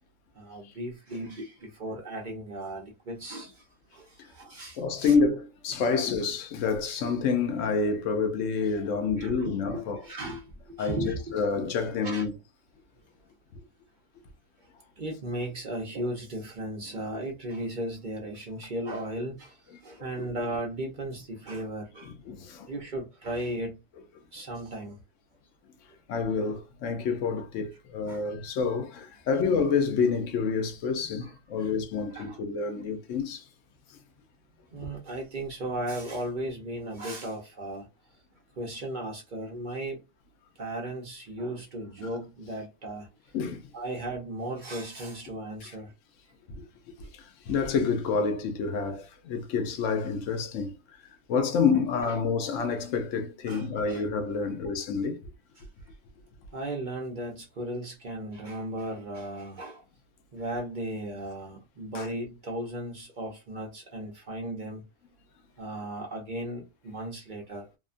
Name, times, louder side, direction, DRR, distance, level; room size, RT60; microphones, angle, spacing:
voice 1, 0.3-3.7 3.9-5.2 9.1-11.3 12.0-12.2 15.0-22.1 22.7-23.8 24.3-25.0 25.9-26.0 28.1-28.3 31.2-31.8 32.1-32.4 32.7-32.9 34.7-37.9 38.6-40.0 40.6-43.1 43.7-45.9 52.0-52.2 53.5-54.0 55.6-55.7 56.5-59.8 60.3-64.8 65.6-67.7, right 1 dB, 45° right, 0.7 m, -36 dB
voice 2, 4.8-10.0 10.8-11.0 11.3-12.3 13.5-13.6 20.0-20.1 22.0-22.7 26.1-33.5 33.9-34.0 43.3-43.7 45.6-45.7 46.5-46.7 47.0-50.7 51.3-55.2 61.9-62.1, left 5 dB, 75° left, 0.9 m, -28 dB
2.8 x 2.2 x 2.4 m
omnidirectional pair, 1.3 m